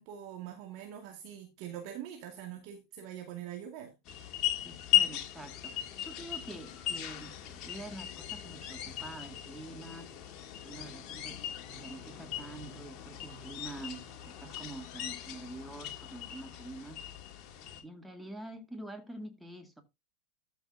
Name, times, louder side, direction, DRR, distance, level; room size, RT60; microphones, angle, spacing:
voice 1, 0.0-3.9, right 10 dB, 55° right, 2.3 m, -43 dB
sound 1, 4.0-17.8, left 12 dB, 45° left, 2.4 m, -37 dB
voice 2, 4.6-10.1 10.6-11.4 11.7-17.0 17.8-19.8, right 2 dB, 5° right, 2.2 m, -46 dB
13.5 x 6.8 x 2.8 m
hypercardioid pair, 95°, 0 cm